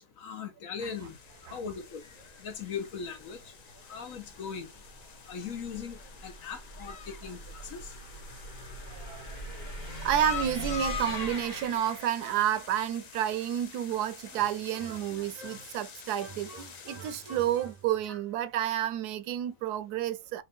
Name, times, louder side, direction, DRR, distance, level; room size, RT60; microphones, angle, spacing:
voice 1, 0.2-1.2 1.5-2.0 2.4-3.5 3.9-4.7 5.3-7.9, left 6 dB, 65° left, 1.3 m, -39 dB
sound 1, 0.8-17.8, left 7 dB, 90° left, 0.3 m, -45 dB
sound 2, 1.3-12.7, equal, 30° left, 1.4 m, -43 dB
voice 2, 8.8-9.7 10.0-20.4, right 11 dB, 90° right, 1.2 m, -30 dB
sound 3, 14.3-15.8 16.2-18.4, right 3 dB, 60° right, 2.2 m, -48 dB
5.0 x 2.7 x 3.6 m
omnidirectional pair, 1.6 m